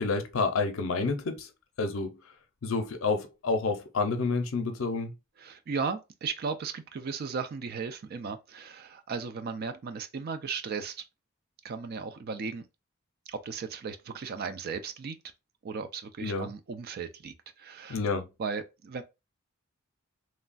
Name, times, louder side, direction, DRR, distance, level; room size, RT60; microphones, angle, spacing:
voice 1, 0.0-1.5 1.8-2.2 2.6-5.1 16.2-16.5 17.9-18.3, left 4 dB, 65° left, 0.5 m, -29 dB
voice 2, 5.4-11.0 11.6-12.6 13.3-15.2 15.6-18.0 18.4-19.0, right 5 dB, 45° right, 0.4 m, -36 dB
3.1 x 2.2 x 2.4 m
head